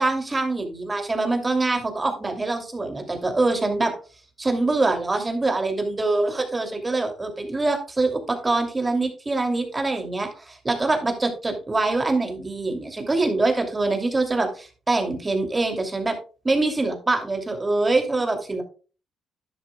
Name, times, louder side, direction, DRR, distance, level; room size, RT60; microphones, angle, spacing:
voice 1, 0.0-3.9 4.4-16.2 16.4-18.6, right 2 dB, 20° right, 4 dB, 2.6 m, -24 dB
11.5 x 10.0 x 2.2 m, 0.35 s
cardioid pair, 90°, 0 cm